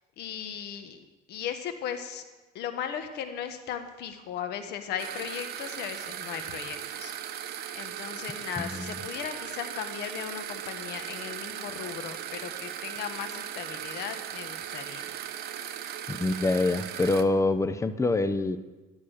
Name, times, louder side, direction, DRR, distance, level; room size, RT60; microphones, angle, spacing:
voice 1, 0.2-2.2 2.5-7.4 7.7-15.0, left 8 dB, 80° left, 8 dB, 1.5 m, -37 dB
sound 1, 5.0-17.2, right 10 dB, 70° right, 1.0 m, -38 dB
voice 2, 8.6-8.9 16.1-18.6, left 2 dB, 15° left, 11 dB, 0.8 m, -25 dB
12.0 x 11.0 x 6.5 m, 1.2 s
cardioid pair, 110°, 17 cm